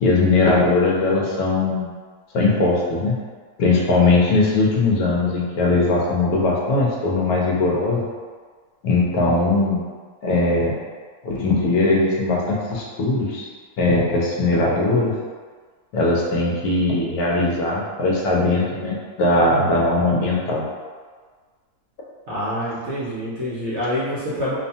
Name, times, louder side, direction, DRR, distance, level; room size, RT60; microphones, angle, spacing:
voice 1, 0.0-1.9 2.3-3.2 3.6-8.0 8.8-9.9 10.2-10.8 11.2-13.5 13.8-15.1 15.9-20.6, left 2 dB, 75° left, -4 dB, 1.1 m, -19 dB
voice 2, 22.3-24.6, equal, 65° right, -9 dB, 0.7 m, -26 dB
2.7 x 2.2 x 2.6 m, 1.6 s
omnidirectional pair, 1.6 m